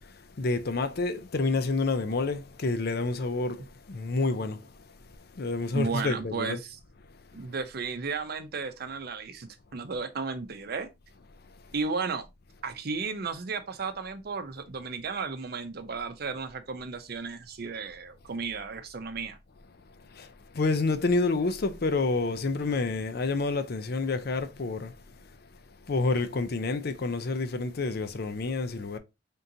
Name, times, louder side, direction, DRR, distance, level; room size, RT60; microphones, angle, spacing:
voice 1, 0.4-4.6 5.4-6.6 20.1-24.9 25.9-29.0, left 3 dB, 55° left, 0.5 m, -28 dB
voice 2, 5.7-6.8 7.3-10.9 11.7-12.2 12.6-19.4, right 4 dB, 55° right, 0.6 m, -34 dB
3.9 x 3.7 x 2.7 m
head